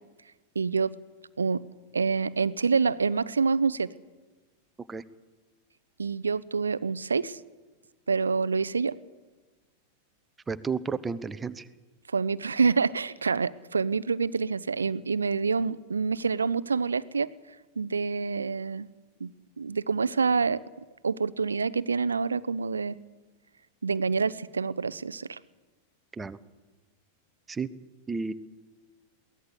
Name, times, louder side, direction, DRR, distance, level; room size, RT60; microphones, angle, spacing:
voice 1, 0.5-1.0 1.4-1.6 1.9-3.9 6.0-7.4 8.1-9.0 12.1-17.3 17.8-18.9 19.2-20.6 21.0-23.0 23.8-25.4, right 5 dB, 75° right, 18 dB, 0.7 m, -27 dB
voice 2, 10.5-11.7 26.1-26.4 27.5-27.7 28.1-28.3, right 5 dB, 15° right, 13 dB, 1.0 m, -32 dB
23.0 x 17.5 x 8.2 m, 1.3 s
figure-of-eight pair, 90°, 0 cm